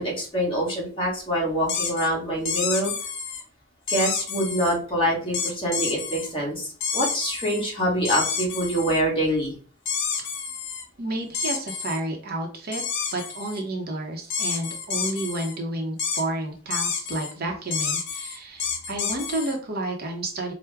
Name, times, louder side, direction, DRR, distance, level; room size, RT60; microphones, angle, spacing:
voice 1, 0.0-2.9 3.9-6.7 6.9-9.5, equal, 25° left, -4 dB, 1.5 m, -25 dB
sound 1, 1.7-2.1 2.5-3.4 3.9-4.8 5.3-6.3 6.8-7.6 8.0-9.0 9.9-10.8 11.3-12.0 12.7-13.6 14.3-15.6 16.0-16.2 16.7-17.3 17.7-19.6, left 6 dB, 60° left, 0.7 m, -29 dB
voice 2, 11.0-12.8 13.1-20.5, right 1 dB, 50° right, 2 dB, 0.7 m, -31 dB
4.5 x 2.1 x 3.4 m, 0.41 s
head